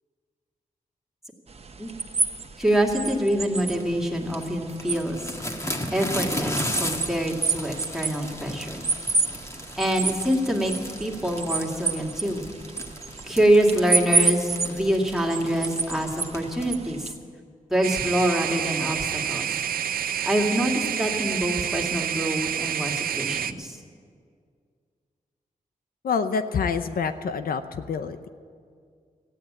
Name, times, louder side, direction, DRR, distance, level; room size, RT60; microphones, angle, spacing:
sound 1, 1.5-17.1, right 4 dB, 45° right, 1.0 m, -30 dB
voice 1, 2.6-5.3 5.9-8.9 9.8-10.7 11.0-12.5 13.2-17.1 17.7-19.5 20.2-23.8, right 1 dB, 5° right, -1 dB, 2.2 m, -25 dB
sound 2, 3.6-16.7, left 1 dB, 20° left, 1.6 m, -36 dB
sound 3, 17.8-23.5, right 9 dB, 90° right, 0.4 m, -28 dB
voice 2, 26.0-28.3, left 5 dB, 80° left, 10 dB, 0.6 m, -27 dB
14.5 x 9.4 x 8.8 m, 2.1 s
cardioid pair, 70°, 15 cm